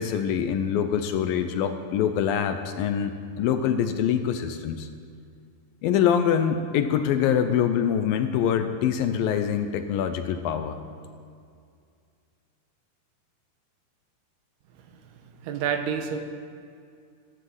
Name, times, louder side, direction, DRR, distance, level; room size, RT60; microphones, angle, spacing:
voice 1, 0.0-4.9 5.8-10.8, left 8 dB, 75° left, 8 dB, 2.2 m, -24 dB
voice 2, 15.4-16.2, right 7 dB, 80° right, 5 dB, 3.1 m, -28 dB
14.0 x 12.0 x 7.9 m, 2.3 s
omnidirectional pair, 4.7 m